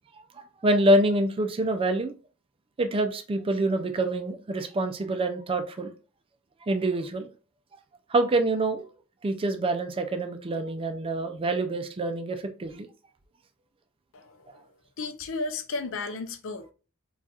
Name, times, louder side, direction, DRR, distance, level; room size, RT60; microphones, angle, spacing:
voice 1, 0.6-2.1 2.8-5.9 6.7-7.3 8.1-8.8 9.2-12.9, right 1 dB, 25° right, 0.4 m, -26 dB
voice 2, 14.1-14.6 15.0-16.7, left 3 dB, 65° left, 0.5 m, -34 dB
4.0 x 2.4 x 2.4 m
head